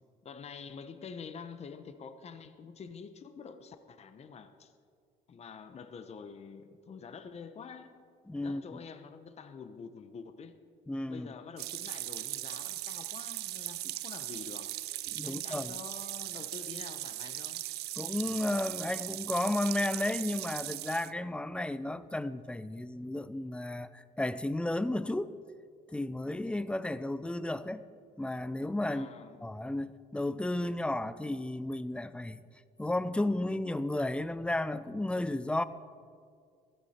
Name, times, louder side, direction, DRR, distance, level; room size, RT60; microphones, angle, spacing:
voice 1, 0.2-4.7 5.3-7.9 8.4-10.5 11.1-14.7 15.2-17.6 28.9-29.5, left 6 dB, 40° left, 9 dB, 0.9 m, -47 dB
voice 2, 8.3-8.6 10.9-11.3 15.1-15.7 18.0-25.3 25.9-27.8 28.2-29.1 29.4-32.4 32.8-35.6, left 1 dB, 5° left, 14 dB, 0.5 m, -33 dB
sound 1, 11.6-21.1, right 16 dB, 75° right, 0.5 m, -39 dB
16.0 x 13.5 x 4.4 m, 2.2 s
cardioid pair, 110°, 17 cm